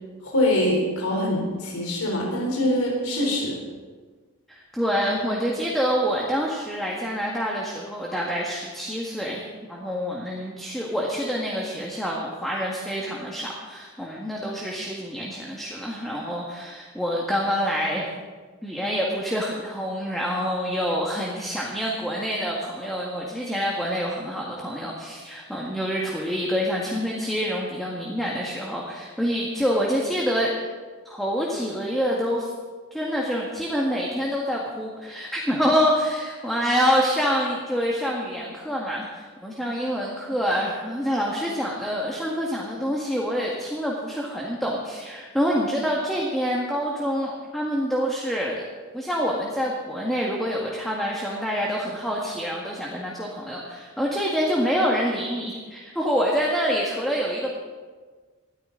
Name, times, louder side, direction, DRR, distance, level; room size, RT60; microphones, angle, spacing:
voice 1, 0.2-3.6, left 1 dB, 80° left, -1 dB, 3.7 m, -24 dB
voice 2, 4.5-18.1 18.6-30.5 31.0-32.5 32.9-48.6 48.9-57.6, equal, ahead, -3 dB, 1.7 m, -26 dB
20.5 x 13.0 x 3.9 m, 1.4 s
head